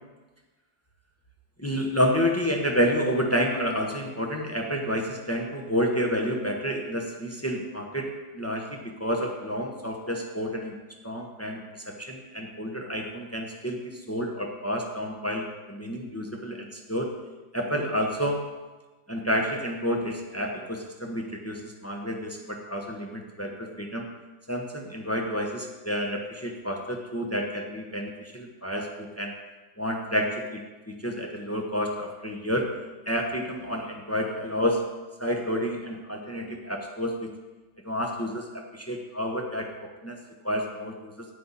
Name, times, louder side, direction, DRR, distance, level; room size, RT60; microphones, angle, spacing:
voice 1, 1.6-8.1 8.3-10.7 11.0-17.1 17.5-18.4 19.1-24.0 24.5-29.3 29.8-32.7 33.1-34.8 35.2-37.3 37.8-39.7 40.0-40.2 40.4-41.1, equal, 15° left, 1 dB, 0.6 m, -29 dB
12.0 x 9.7 x 4.1 m, 1.2 s
omnidirectional pair, 2.1 m